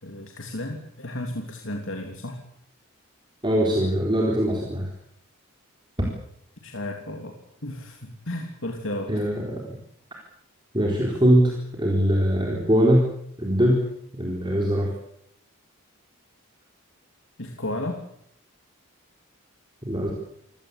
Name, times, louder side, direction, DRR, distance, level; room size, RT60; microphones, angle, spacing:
voice 1, 0.0-2.4 6.0-6.1 6.6-7.3 7.6-9.1 17.4-18.0, left 1 dB, 60° left, 2 dB, 3.2 m, -33 dB
voice 2, 3.4-4.9 6.0-6.1 9.1-9.6 10.7-13.1 13.4-13.9 14.1-14.9 19.8-20.1, equal, 20° right, -1 dB, 4.3 m, -22 dB
28.0 x 17.0 x 8.4 m, 0.72 s
head